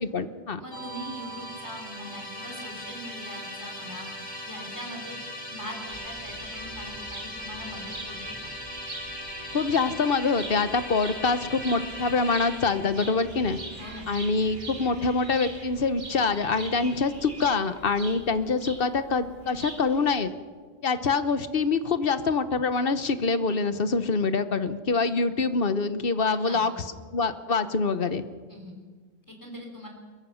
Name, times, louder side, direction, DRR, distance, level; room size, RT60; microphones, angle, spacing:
voice 1, 0.0-0.6 9.5-13.6 14.1-20.3 20.8-26.8 27.1-28.2, left 4 dB, 65° left, 11 dB, 1.2 m, -25 dB
voice 2, 0.6-5.2 5.5-8.5 13.8-14.1 26.3-26.9 28.5-28.8 29.3-29.9, equal, 20° left, 0 dB, 3.8 m, -42 dB
Musical instrument, 0.7-15.9, equal, 45° left, 2.7 m, -40 dB
sound 1, 5.9-20.2, right 2 dB, 50° right, 2.3 m, -43 dB
23.0 x 22.0 x 5.8 m, 1.5 s
omnidirectional pair, 1.1 m